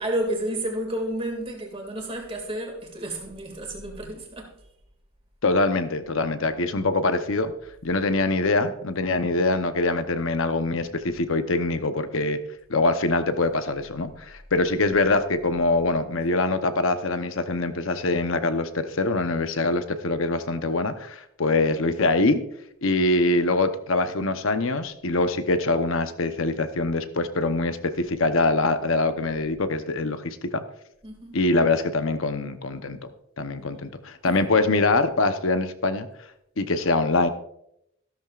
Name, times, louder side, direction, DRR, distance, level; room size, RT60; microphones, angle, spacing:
voice 1, 0.0-4.5 31.0-31.4 34.2-34.4, right 1 dB, 25° right, 2.2 m, -31 dB
voice 2, 5.4-7.5 7.8-12.4 12.7-22.4 22.8-30.6 31.3-33.1 33.4-36.1 36.6-37.3, left 2 dB, 60° left, 0.8 m, -24 dB
14.0 x 12.5 x 2.4 m
head